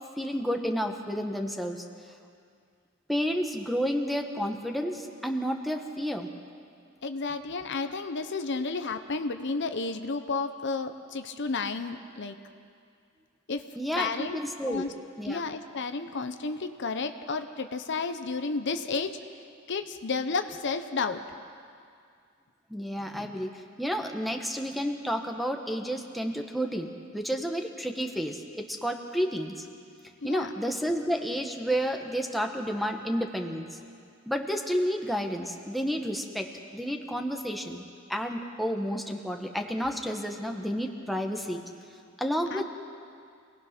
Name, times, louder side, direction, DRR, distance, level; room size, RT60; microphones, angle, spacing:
voice 1, 0.2-1.8 3.1-6.3 13.8-14.8 15.2-15.4 22.7-29.7 30.2-33.7 34.2-41.6 42.2-42.7, equal, ahead, 2 dB, 1.3 m, -31 dB
voice 2, 7.0-12.4 13.5-13.6 14.0-14.4 14.7-14.9 15.2-19.2 19.7-21.2 30.2-30.5 42.5-42.7, left 4 dB, 60° left, 8 dB, 0.8 m, -32 dB
27.0 x 18.5 x 6.0 m, 2.3 s
head